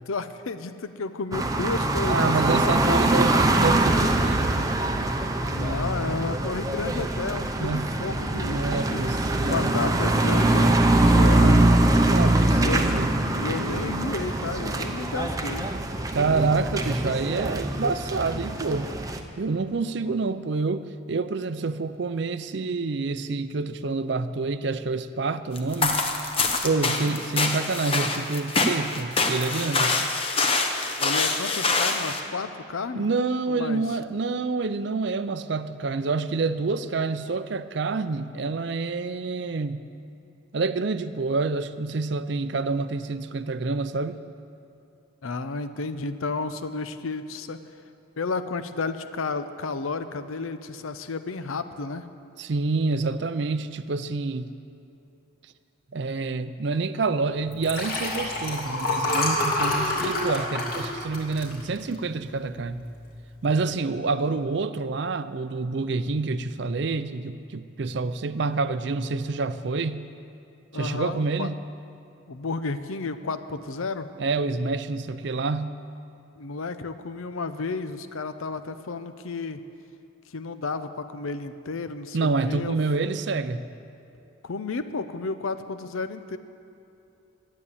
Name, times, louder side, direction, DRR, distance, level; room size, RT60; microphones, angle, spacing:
voice 1, 0.1-2.3 2.6-3.4 5.4-9.0 9.4-11.6 12.5-12.9 13.3-15.7 19.9-20.1 26.7-27.1 31.0-33.1 33.5-33.8 45.2-47.6 48.2-52.1 70.7-71.5 72.3-74.1 76.4-79.6 80.3-82.8 84.4-86.4, left 4 dB, 85° left, 11 dB, 0.7 m, -32 dB
sound 1, 1.3-19.2, right 1 dB, 15° right, 0.6 m, -23 dB
voice 2, 2.1-4.7 7.6-9.8 12.0-13.1 16.1-18.9 19.4-26.4 26.6-30.1 32.9-39.8 40.5-44.2 52.4-54.5 55.9-62.8 63.4-70.0 70.7-71.6 74.2-75.8 82.1-83.6, right 3 dB, 55° right, 12 dB, 0.5 m, -28 dB
sound 2, 25.6-32.2, left 3 dB, 25° left, 0.8 m, -25 dB
Liquid, 57.5-62.2 62.6-62.9 63.2-63.3, left 1 dB, 45° left, 2.4 m, -27 dB
12.5 x 8.5 x 8.5 m, 2.7 s
head